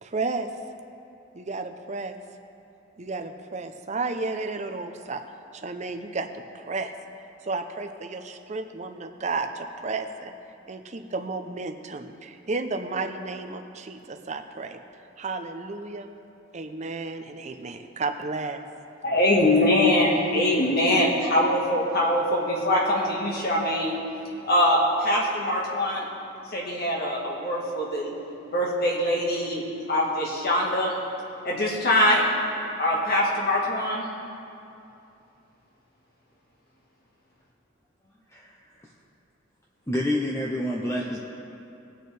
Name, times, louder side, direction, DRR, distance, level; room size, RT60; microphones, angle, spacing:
voice 1, 0.0-0.5 1.3-2.2 3.0-5.2 5.5-6.9 7.4-10.3 10.7-14.8 15.2-16.1 16.5-18.6, right 3 dB, 35° right, 7 dB, 0.6 m, -32 dB
voice 2, 19.0-24.0 24.5-26.0 26.5-28.1 28.5-30.9 31.4-32.3 32.8-34.1, left 1 dB, 50° left, -3 dB, 1.5 m, -23 dB
voice 3, 39.9-41.2, left 1 dB, 15° left, -3 dB, 0.7 m, -27 dB
20.0 x 6.7 x 3.3 m, 2.7 s
head